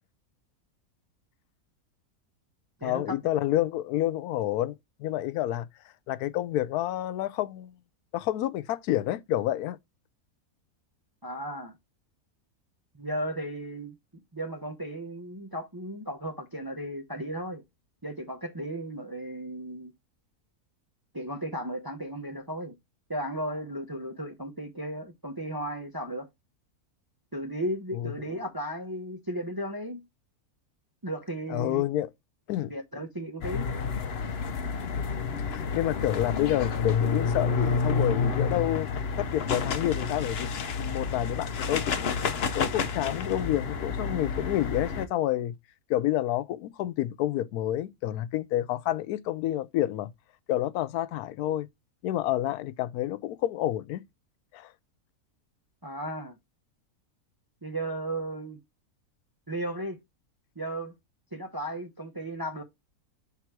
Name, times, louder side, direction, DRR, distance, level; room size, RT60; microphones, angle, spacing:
voice 1, 2.8-5.7 6.1-7.7 8.1-9.8 27.9-28.1 31.5-32.1 32.5-32.7 35.0-40.5 40.8-42.2 42.5-45.5 45.9-50.1 50.5-51.7 52.0-54.0 54.5-54.7, left 13 dB, 90° left, 1.1 m, -29 dB
voice 2, 11.2-11.7 12.9-13.9 14.3-17.6 18.0-19.9 21.1-22.7 23.1-26.3 27.3-30.0 31.0-31.8 32.7-33.7 55.8-56.3 57.6-58.6 59.5-60.0 60.6-60.9 61.3-62.6, right 1 dB, 25° right, 0.5 m, -35 dB
sound 1, 33.4-45.0, left 5 dB, 50° left, 0.9 m, -29 dB
6.0 x 3.7 x 4.5 m
omnidirectional pair, 1.6 m